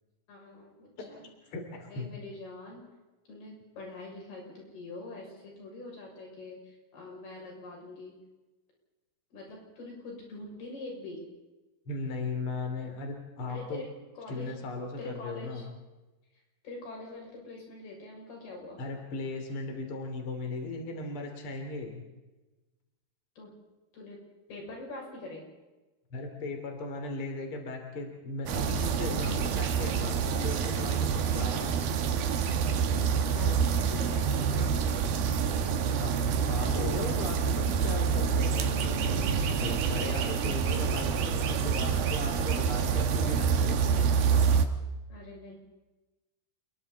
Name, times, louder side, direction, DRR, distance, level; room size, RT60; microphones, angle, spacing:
voice 1, 0.3-1.3 1.9-2.8 3.3-8.2 9.3-11.2 13.5-13.9 14.2-14.6 15.0-15.7 16.6-18.8 23.4-23.5 23.9-24.2 24.5-25.4 32.6-33.6 33.9-35.0 45.1-45.6, left 2 dB, 80° left, -1 dB, 8.7 m, -44 dB
voice 2, 1.5-2.1 11.9-13.8 14.3-15.7 18.8-22.0 26.1-31.9 35.9-36.1 36.5-44.1, left 2 dB, 35° left, 3 dB, 3.6 m, -37 dB
sound 1, 28.5-44.7, right 6 dB, 75° right, 3.2 m, -27 dB
29.5 x 22.0 x 4.2 m, 1.1 s
omnidirectional pair, 4.4 m